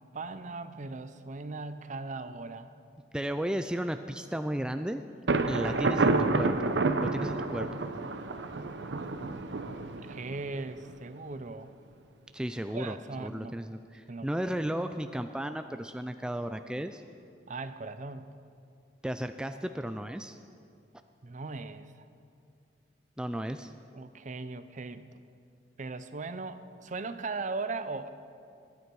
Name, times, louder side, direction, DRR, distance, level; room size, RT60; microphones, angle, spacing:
voice 1, 0.0-2.7 5.5-6.0 10.0-11.7 12.7-13.5 14.1-14.3 17.5-18.3 21.2-22.1 23.9-25.1 25.8-28.1, right 3 dB, 45° right, 11 dB, 0.6 m, -39 dB
voice 2, 3.1-5.0 5.5-6.7 7.0-7.9 12.3-17.0 19.0-20.4 23.2-23.7, right 1 dB, 5° right, 8 dB, 0.3 m, -34 dB
Thunder, 5.3-10.9, right 3 dB, 85° right, 0.8 m, -29 dB
21.5 x 9.4 x 4.7 m, 2.4 s
head